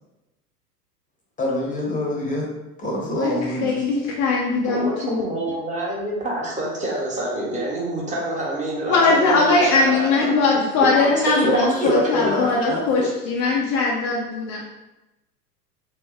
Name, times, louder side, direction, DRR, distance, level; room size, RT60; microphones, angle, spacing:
voice 1, 1.4-2.4 2.8-3.7 11.4-13.1, left 1 dB, 15° left, -2 dB, 1.0 m, -25 dB
voice 2, 3.6-5.2 8.9-14.6, left 3 dB, 35° left, -3 dB, 0.7 m, -20 dB
voice 3, 4.7-11.7 12.0-12.4, right 1 dB, 15° right, -5 dB, 1.2 m, -27 dB
3.1 x 2.9 x 3.7 m, 0.98 s
figure-of-eight pair, 95°, 47 cm